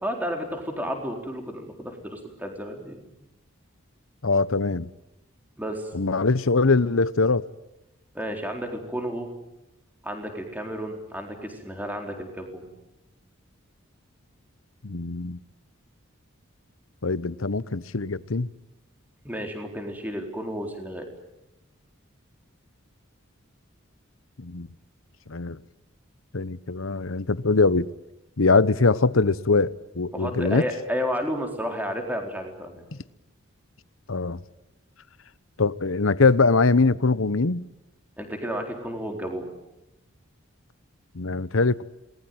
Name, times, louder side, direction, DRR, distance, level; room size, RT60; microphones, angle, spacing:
voice 1, 0.0-3.1 5.6-5.9 8.1-9.3 10.0-12.7 19.2-21.1 30.1-32.8 38.2-39.5, equal, 10° right, 4.1 m, -32 dB
voice 2, 4.2-4.9 5.9-7.5 14.8-15.4 17.0-18.5 24.4-24.7 25.3-25.6 26.3-27.9 28.4-30.6 34.1-34.4 35.6-37.6 41.1-41.8, left 3 dB, 75° left, 1.0 m, -22 dB
28.0 x 20.5 x 9.4 m
head